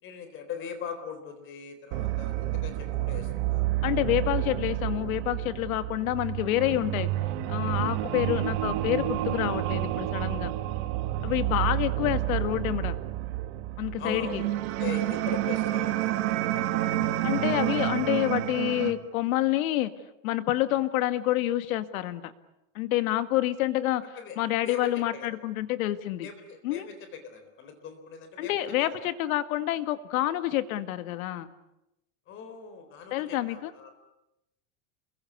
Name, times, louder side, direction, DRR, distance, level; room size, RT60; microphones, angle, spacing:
voice 1, 0.0-3.7 14.0-16.8 24.1-24.4 24.6-25.3 26.2-28.5 28.8-28.9 32.3-33.9, left 7 dB, 30° left, 8 dB, 3.9 m, -40 dB
sound 1, 1.9-18.9, right 14 dB, 50° right, 1.9 m, -29 dB
voice 2, 3.8-7.1 7.5-10.5 11.2-13.0 13.8-14.4 17.2-19.9 20.2-22.3 22.8-24.0 24.4-26.3 26.6-26.9 28.4-31.5 33.1-33.7, left 14 dB, 80° left, 11 dB, 2.0 m, -28 dB
28.5 x 23.0 x 8.3 m, 0.89 s
supercardioid pair, 175°, 41 cm